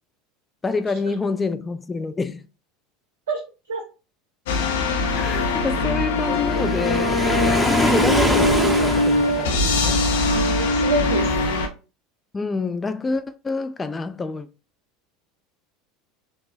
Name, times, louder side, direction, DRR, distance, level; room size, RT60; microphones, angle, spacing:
voice 1, 0.6-2.5 5.1-10.0 12.3-14.5, left 3 dB, 20° left, 0.4 m, -27 dB
sound 1, 4.5-11.7, left 2 dB, 70° left, 0.6 m, -21 dB
Waves surf, 6.2-9.7, equal, 5° left, 0.9 m, -24 dB
voice 2, 10.1-11.6, right 1 dB, 75° right, 0.7 m, -28 dB
5.8 x 2.1 x 2.5 m
hypercardioid pair, 80°, 0 cm